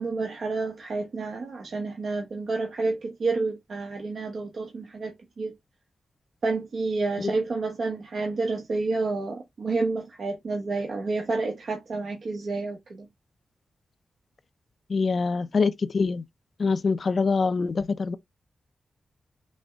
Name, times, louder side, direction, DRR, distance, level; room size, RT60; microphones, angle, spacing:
voice 1, 0.0-5.5 6.4-13.1, right 3 dB, 65° right, 1.0 m, -29 dB
voice 2, 14.9-16.2 16.6-18.2, left 4 dB, 55° left, 0.5 m, -24 dB
6.2 x 2.1 x 3.5 m
cardioid pair, 60°, 0 cm